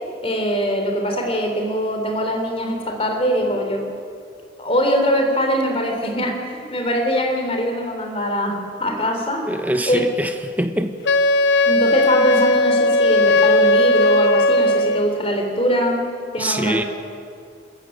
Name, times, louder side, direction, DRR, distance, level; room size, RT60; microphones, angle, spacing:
voice 1, 0.2-3.9 4.6-9.5 9.9-10.0 11.7-16.1 16.3-16.8, equal, 30° left, 3.5 m, -22 dB
voice 2, 9.5-10.9 16.4-16.8, right 1 dB, 10° right, 1.1 m, -24 dB
Wind instrument woodwind instrument, 11.0-15.2, left 1 dB, 75° left, 0.6 m, -17 dB
26.0 x 14.5 x 8.9 m
head